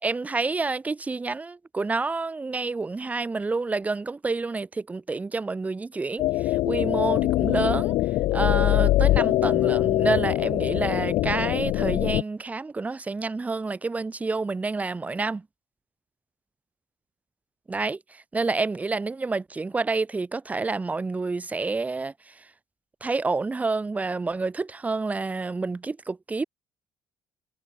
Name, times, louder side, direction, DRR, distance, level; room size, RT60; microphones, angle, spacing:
voice 1, 0.0-7.9 8.3-15.4 17.7-22.5 23.0-26.4, right 3 dB, 15° right, 3.6 m, -28 dB
sound 1, 6.2-12.2, left 16 dB, 70° left, 0.5 m, -23 dB
cardioid pair, 155°, 9 cm